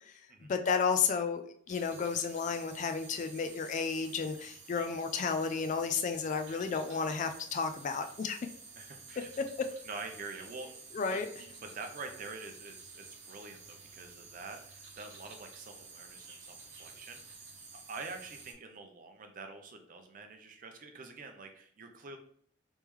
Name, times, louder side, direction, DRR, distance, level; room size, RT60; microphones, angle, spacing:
voice 1, 0.5-1.4 1.7-8.4 10.9-11.3, left 5 dB, 40° left, 8 dB, 0.3 m, -32 dB
sound 1, 1.7-18.5, right 4 dB, 80° right, 0.8 m, -52 dB
voice 2, 6.5-7.2 8.8-9.3 9.8-10.7 11.1-22.2, right 3 dB, 45° right, 5 dB, 0.5 m, -46 dB
3.5 x 3.1 x 3.1 m, 0.64 s
head